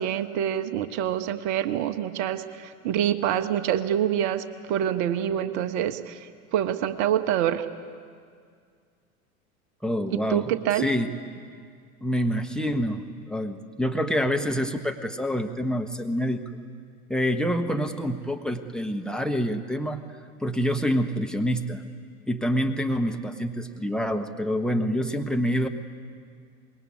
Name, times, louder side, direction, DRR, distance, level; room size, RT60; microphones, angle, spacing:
voice 1, 0.0-6.2 6.5-7.6 10.3-10.9, right 10 dB, 40° right, 11 dB, 1.3 m, -26 dB
voice 2, 9.8-11.1 12.0-16.4 17.1-20.0 20.4-21.8 22.3-25.7, equal, ahead, 9 dB, 1.3 m, -27 dB
25.0 x 21.0 x 9.7 m, 2.1 s
figure-of-eight pair, 85°, 44 cm